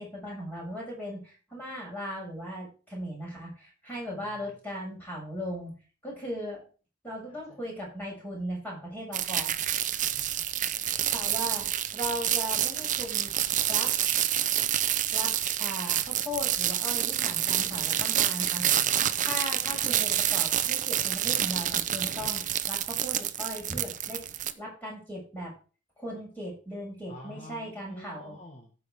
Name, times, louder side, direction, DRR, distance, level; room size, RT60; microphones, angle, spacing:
voice 1, 0.0-5.7 6.0-6.7 7.0-9.6 11.0-13.3 13.7-13.9 15.1-15.3 15.6-18.6 19.2-25.5 26.0-28.4, equal, 10° left, -4 dB, 7.4 m, -38 dB
sound 1, 9.1-24.5, right 11 dB, 40° right, 0.7 m, -28 dB
voice 2, 9.9-10.8 18.6-19.2 27.1-28.7, left 1 dB, 35° left, 0 dB, 1.8 m, -49 dB
15.5 x 5.3 x 4.9 m, 0.37 s
head